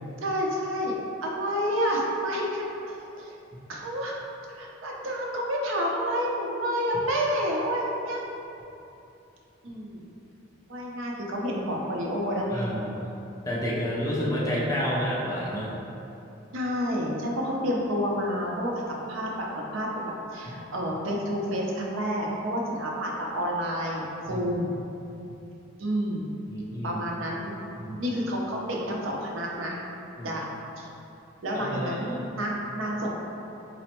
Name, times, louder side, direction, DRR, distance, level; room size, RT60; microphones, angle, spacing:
voice 1, 0.2-1.0 1.2-3.3 3.7-4.2 4.5-8.2 9.6-10.1 10.7-12.7 16.5-24.7 25.8-26.3 26.8-27.6 28.0-29.8 30.2-30.5 30.8-30.9 31.4-33.1, equal, 75° right, -2 dB, 0.5 m, -29 dB
voice 2, 12.5-13.1 13.5-15.7 24.3-24.5 26.5-27.0 27.8-28.0 30.2-30.3 31.5-32.2, equal, 15° left, -6 dB, 0.5 m, -30 dB
4.2 x 2.0 x 2.9 m, 2.8 s
head